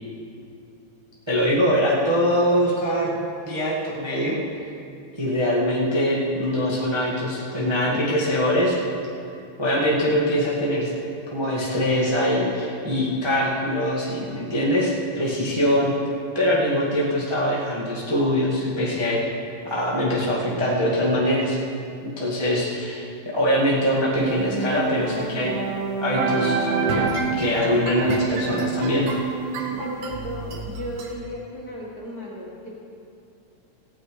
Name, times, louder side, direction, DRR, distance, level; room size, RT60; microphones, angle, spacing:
voice 1, 1.3-3.2 3.4-4.4 5.2-8.8 9.6-10.9 11.3-15.9 16.3-19.4 19.7-21.6 22.0-25.5 26.0-27.0 27.3-29.1, equal, 20° right, -6 dB, 0.7 m, -23 dB
sound 1, 24.3-31.1, right 5 dB, 80° right, 2.9 m, -27 dB
voice 2, 29.7-32.7, equal, 35° left, -5 dB, 1.7 m, -35 dB
16.5 x 9.2 x 4.9 m, 2.6 s
omnidirectional pair, 3.9 m